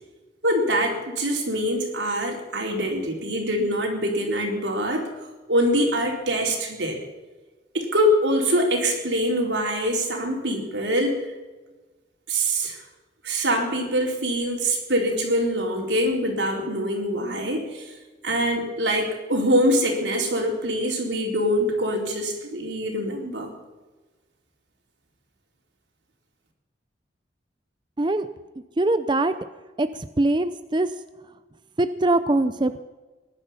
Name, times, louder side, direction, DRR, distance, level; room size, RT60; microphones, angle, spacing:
voice 1, 0.4-5.1 5.5-7.0 7.7-11.2 12.3-12.8 13.2-17.9 18.2-23.5, equal, 85° right, 0 dB, 4.2 m, -24 dB
voice 2, 28.0-28.3 28.8-29.3 29.8-30.9 31.8-32.8, right 2 dB, 25° right, 11 dB, 0.5 m, -22 dB
19.5 x 12.0 x 5.8 m, 1.2 s
head